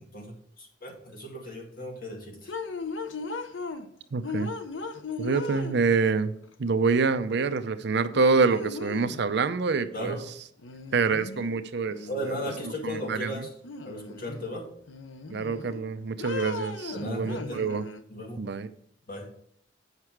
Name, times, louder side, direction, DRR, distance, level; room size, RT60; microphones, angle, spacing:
voice 1, 0.1-2.5 9.9-10.2 12.1-13.5 13.8-14.7 16.9-17.6 18.1-18.4 19.1-19.3, equal, 50° left, 1 dB, 2.2 m, -36 dB
sound 1, 2.5-3.9 4.2-6.1 7.6-7.7 8.1-9.3 10.6-11.6 11.9-13.1 13.6-14.5 14.9-15.8 16.2-18.0, left 4 dB, 85° left, 0.7 m, -37 dB
voice 2, 4.1-4.5 5.2-6.3 6.6-10.2 10.9-12.4 12.8-13.3 15.3-17.8 18.4-18.7, right 4 dB, 60° right, 11 dB, 0.5 m, -26 dB
8.1 x 5.8 x 4.6 m, 0.65 s
head